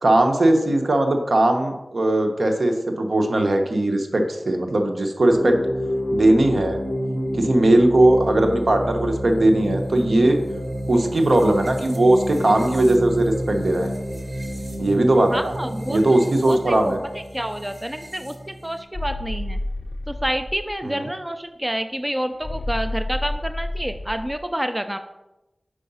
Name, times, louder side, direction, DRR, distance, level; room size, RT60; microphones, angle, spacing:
voice 1, 0.0-5.6 6.1-6.8 7.3-10.4 10.9-13.9 14.8-15.5 15.9-17.0 20.8-21.0, right 1 dB, 70° right, 4 dB, 0.9 m, -19 dB
sound 1, 5.3-18.8, equal, 30° right, 1.3 m, -29 dB
voice 2, 15.3-17.0 17.3-19.6 20.1-25.0, equal, 15° right, 8 dB, 0.4 m, -28 dB
sound 2, 18.9-20.8 22.4-24.4, left 1 dB, 65° left, 0.3 m, -30 dB
5.0 x 4.7 x 5.4 m, 0.95 s
wide cardioid pair, 60°, 0 cm